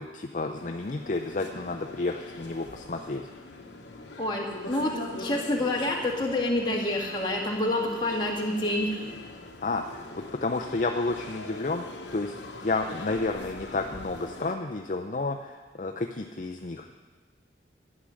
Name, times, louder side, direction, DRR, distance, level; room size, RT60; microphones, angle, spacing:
voice 1, 0.0-3.3 9.6-10.1 10.4-11.8 12.1-12.3 12.6-16.9, left 3 dB, 40° left, 3 dB, 0.6 m, -31 dB
sound 1, 0.5-14.6, left 2 dB, 70° left, 1.1 m, -42 dB
voice 2, 4.2-9.1, left 1 dB, 25° left, -2 dB, 1.9 m, -28 dB
12.0 x 9.6 x 6.4 m, 1.3 s
head